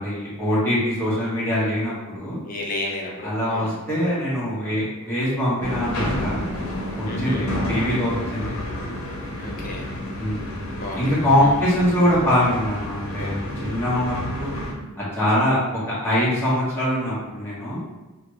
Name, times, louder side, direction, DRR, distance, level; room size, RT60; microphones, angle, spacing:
voice 1, 0.0-2.4 3.2-6.4 6.9-8.5 10.2-10.6 11.0-14.5 15.0-17.8, equal, 10° left, -10 dB, 1.2 m, -23 dB
voice 2, 2.4-3.7 7.1-7.5 9.4-9.9 10.8-11.1 11.4-11.5, left 1 dB, 40° left, -1 dB, 0.6 m, -32 dB
sound 1, 5.6-14.7, left 1 dB, 70° left, 0.8 m, -30 dB
2.8 x 2.4 x 3.2 m, 1.1 s
head